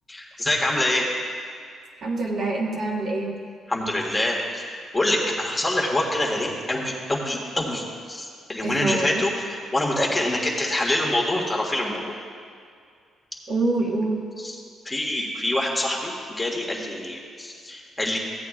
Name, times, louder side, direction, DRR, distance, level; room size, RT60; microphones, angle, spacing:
voice 1, 0.1-1.1 3.7-8.2 8.5-12.0 14.4-18.2, left 1 dB, 20° left, -2 dB, 1.8 m, -26 dB
voice 2, 2.0-3.4 8.6-9.2 13.5-14.2, right 2 dB, 55° right, -2 dB, 1.6 m, -25 dB
16.0 x 8.5 x 2.5 m, 2.2 s
cardioid pair, 90°, 0 cm